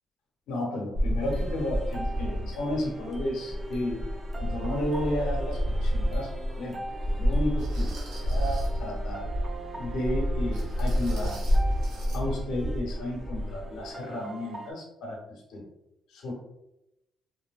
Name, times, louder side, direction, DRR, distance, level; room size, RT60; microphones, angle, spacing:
voice 1, 0.5-4.0 4.4-6.8 7.1-9.3 9.8-11.4 11.9-15.6 16.1-16.3, left 1 dB, 85° left, -1 dB, 0.8 m, -33 dB
sound 1, 0.9-13.9, equal, 60° right, 1.1 m, -29 dB
sound 2, 1.2-14.7, right 3 dB, 25° right, 0.5 m, -43 dB
sound 3, 5.6-5.8 6.4-6.5 7.6-8.8 10.5-12.2 12.5-12.7 13.1-13.2, right 2 dB, 90° right, 0.8 m, -46 dB
3.1 x 2.6 x 2.3 m, 0.88 s
cardioid pair, 90°, 0 cm